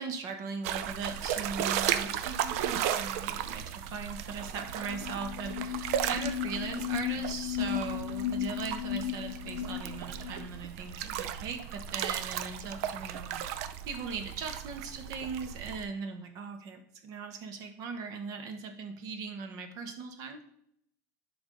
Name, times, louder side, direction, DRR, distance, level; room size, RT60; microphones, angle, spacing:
voice 1, 0.0-13.4 13.9-20.4, right 5 dB, 50° right, 6 dB, 1.2 m, -39 dB
sound 1, 0.6-15.8, right 10 dB, 75° right, 0.5 m, -35 dB
sound 2, 4.4-4.5 4.7-10.5, left 12 dB, 50° left, 0.5 m, -35 dB
10.0 x 3.5 x 3.9 m, 0.71 s
supercardioid pair, 145°, 8 cm